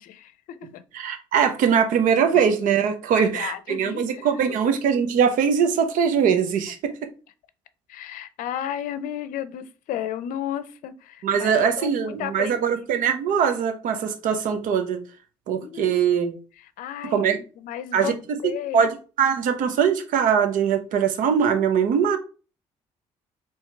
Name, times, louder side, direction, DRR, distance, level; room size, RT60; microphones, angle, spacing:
voice 1, 0.0-0.8 3.1-4.7 7.9-12.6 15.6-16.0 16.6-17.2 17.6-18.8, left 11 dB, 70° left, 0.5 m, -33 dB
voice 2, 0.9-6.9 11.2-15.0 15.5-16.4 17.1-17.4 17.9-18.4 18.7-18.9 19.2-22.2, right 7 dB, 65° right, 0.9 m, -21 dB
4.6 x 3.1 x 3.3 m
hypercardioid pair, 50°, 15 cm